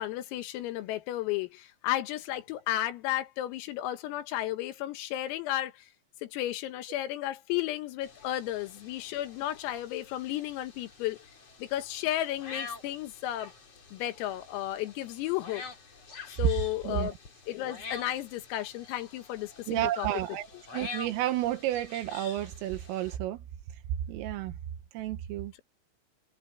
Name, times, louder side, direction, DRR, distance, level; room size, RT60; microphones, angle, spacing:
voice 1, 0.0-5.9 6.2-11.2 11.6-13.5 13.9-15.7 16.3-17.2 17.5-20.1, left 14 dB, 90° left, 4.2 m, -33 dB
sound 1, 8.0-23.2, left 4 dB, 30° left, 4.5 m, -47 dB
voice 2, 19.7-20.5 20.7-23.4 24.1-24.5 24.9-25.5, right 13 dB, 85° right, 3.8 m, -31 dB
omnidirectional pair, 5.9 m